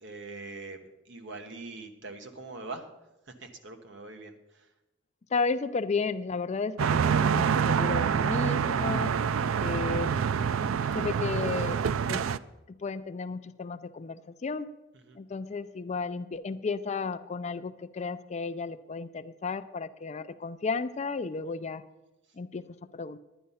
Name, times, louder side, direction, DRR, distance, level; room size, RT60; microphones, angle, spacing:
voice 1, 0.0-2.9 3.3-4.7 15.1-15.2, right 3 dB, 60° right, 6 dB, 1.2 m, -43 dB
voice 2, 5.3-9.1 9.6-10.2 10.9-11.8 12.1-12.3 12.7-14.7 15.1-21.8 22.3-22.6 22.9-23.2, left 4 dB, 35° left, 12 dB, 0.4 m, -33 dB
sound 1, 6.8-12.4, right 7 dB, 85° right, 0.4 m, -26 dB
11.0 x 9.5 x 5.6 m, 0.97 s
head